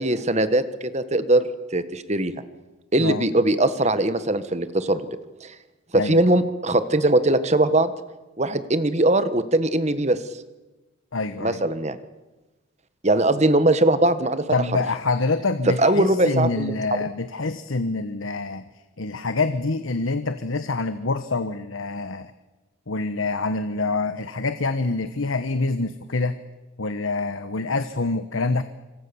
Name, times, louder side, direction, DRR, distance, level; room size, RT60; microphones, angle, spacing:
voice 1, 0.0-1.5 1.7-2.3 2.9-5.0 5.4-5.5 5.9-7.9 8.4-10.2 11.4-12.0 13.0-14.4 15.8-16.7, right 1 dB, 35° right, 12 dB, 1.5 m, -20 dB
voice 2, 11.1-11.6 14.5-18.7 19.0-22.3 22.9-26.4 26.8-28.6, left 3 dB, 75° left, 11 dB, 1.2 m, -26 dB
27.0 x 26.0 x 7.1 m, 1.1 s
head